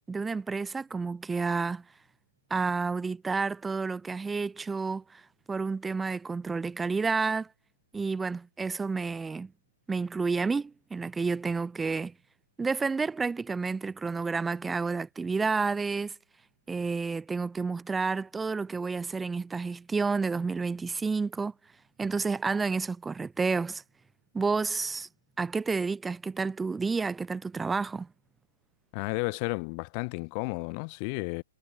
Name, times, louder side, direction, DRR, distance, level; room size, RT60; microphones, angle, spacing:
voice 1, 0.1-1.8 2.5-5.2 5.5-7.5 7.9-9.5 9.9-12.1 12.6-16.1 16.7-21.5 22.0-23.8 24.3-25.1 25.4-28.1, right 4 dB, 10° right, 3.5 m, -30 dB
voice 2, 28.9-31.4, left 39 dB, 35° left, 2.8 m, -32 dB
hypercardioid pair, 145°, 0 cm